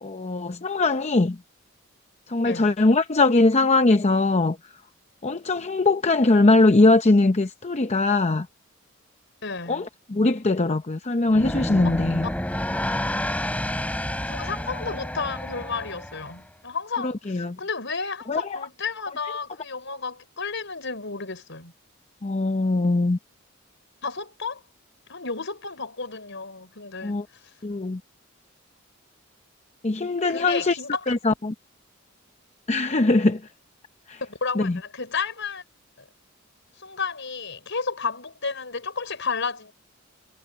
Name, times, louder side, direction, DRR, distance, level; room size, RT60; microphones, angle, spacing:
voice 1, 0.0-1.4 2.3-4.6 5.2-8.5 9.7-12.3 17.3-17.6 18.3-18.6 22.2-23.2 27.0-27.2 27.6-28.0 29.8-30.8 31.1-31.5 32.7-33.4 34.1-34.2 34.6-34.8, left 2 dB, 35° left, 0.7 m, -21 dB
voice 2, 9.4-9.9 14.2-21.7 24.0-24.6 25.1-27.2 30.3-31.1 34.2-35.6 36.8-39.7, left 5 dB, 65° left, 6.1 m, -32 dB
sound 1, 11.3-16.4, left 1 dB, 5° left, 3.4 m, -29 dB
head